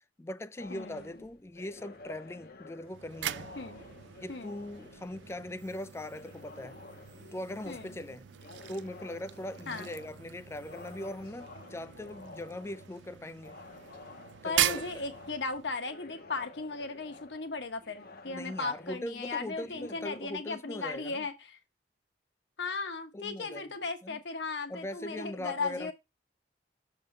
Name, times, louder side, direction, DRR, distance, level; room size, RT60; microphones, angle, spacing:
voice 1, 0.2-3.5 4.2-6.8 7.3-8.3 8.7-13.6 14.4-15.0 18.3-21.2 23.1-23.7 24.0-24.2 24.7-25.9, left 1 dB, 15° left, 0.3 m, -40 dB
sound 1, 0.6-20.2, left 3 dB, 60° left, 0.8 m, -52 dB
voice 2, 0.7-1.2 3.6-3.8 4.3-4.5 7.7-7.9 9.7-9.9 14.4-21.6 22.6-25.9, left 4 dB, 75° left, 1.1 m, -37 dB
sound 2, 2.8-15.9, right 12 dB, 85° right, 0.4 m, -39 dB
6.8 x 3.7 x 5.3 m
head